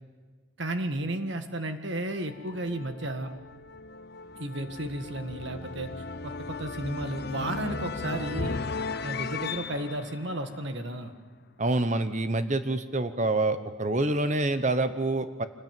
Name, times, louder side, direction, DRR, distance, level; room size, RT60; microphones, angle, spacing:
voice 1, 0.6-3.3 4.4-5.9 6.2-8.6 9.0-11.1, right 1 dB, 55° right, 7 dB, 1.9 m, -33 dB
sound 1, 2.2-11.3, left 4 dB, 50° left, 0.8 m, -37 dB
voice 2, 11.6-15.4, right 2 dB, 35° right, 11 dB, 0.9 m, -27 dB
25.5 x 20.0 x 9.1 m, 1.5 s
head